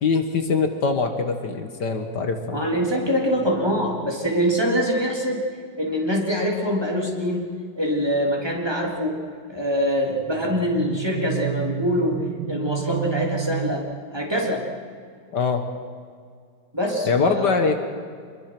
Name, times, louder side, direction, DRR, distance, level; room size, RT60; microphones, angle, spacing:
voice 1, 0.0-2.6 15.3-15.7 17.1-17.7, left 5 dB, 65° left, 6 dB, 2.0 m, -23 dB
sound 1, 1.8-4.1 10.2-13.7, right 11 dB, 75° right, 1.6 m, -32 dB
voice 2, 2.5-5.4 5.8-7.5 7.8-9.2 9.5-14.7 16.7-17.5, equal, 15° right, -2 dB, 3.5 m, -24 dB
26.5 x 22.0 x 6.1 m, 2.1 s
omnidirectional pair, 2.0 m